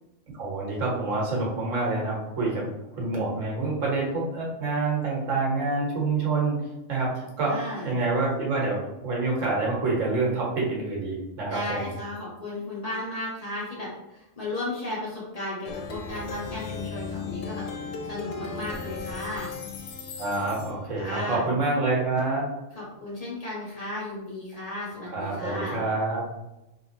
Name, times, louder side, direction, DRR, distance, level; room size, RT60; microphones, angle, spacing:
voice 1, 0.3-2.7 3.0-6.6 6.9-11.9 20.2-22.4 25.1-26.2, right 3 dB, 80° right, -3 dB, 1.4 m, -27 dB
voice 2, 7.5-8.0 11.5-17.7 18.0-19.5 21.0-21.5 22.7-25.8, left 1 dB, 30° left, -6 dB, 1.2 m, -34 dB
Plucked string instrument, 15.7-21.0, left 5 dB, 80° left, 1.0 m, -36 dB
3.4 x 2.9 x 2.7 m, 0.95 s
omnidirectional pair, 1.3 m